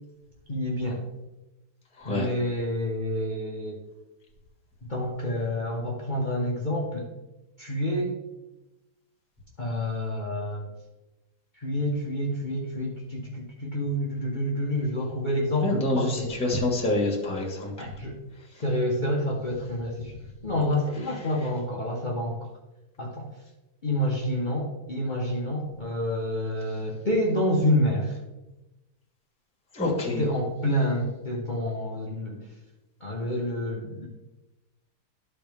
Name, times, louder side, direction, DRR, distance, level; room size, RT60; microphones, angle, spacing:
voice 1, 0.5-1.0 2.0-3.8 4.9-7.0 7.6-8.1 9.6-10.7 11.5-16.3 17.8-18.2 18.6-20.2 20.4-22.4 23.0-23.3 23.8-28.2 30.2-32.5 33.0-34.1, left 1 dB, 80° left, -3 dB, 0.4 m, -28 dB
voice 2, 2.0-2.3 15.6-17.7 29.7-30.3, left 2 dB, 5° left, -1 dB, 1.3 m, -26 dB
12.5 x 4.2 x 3.4 m, 1.0 s
omnidirectional pair, 2.4 m